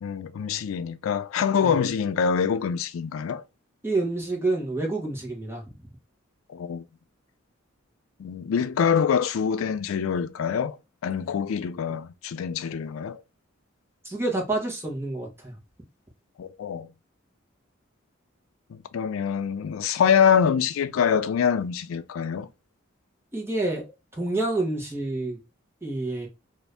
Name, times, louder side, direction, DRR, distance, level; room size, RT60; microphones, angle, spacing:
voice 1, 0.0-3.4 6.5-6.8 8.2-10.8 11.0-13.2 16.4-16.9 18.9-22.5, left 7 dB, 75° left, 0.3 m, -25 dB
voice 2, 3.8-5.6 14.0-15.6 23.3-23.9 24.1-25.4 25.8-26.3, right 2 dB, 10° right, 1.0 m, -28 dB
2.6 x 2.5 x 3.3 m
head